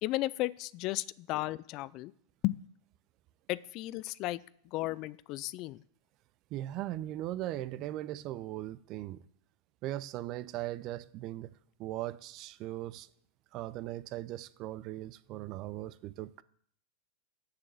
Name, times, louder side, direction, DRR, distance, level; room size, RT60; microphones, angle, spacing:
voice 1, 0.0-2.1 2.4-2.6 3.5-4.4 4.6-5.8, left 18 dB, 50° left, 0.3 m, -34 dB
voice 2, 6.5-9.2 9.8-11.5 11.8-13.1 13.5-16.4, right 14 dB, 45° right, 0.5 m, -39 dB
6.9 x 6.7 x 6.8 m
hypercardioid pair, 100°, 0 cm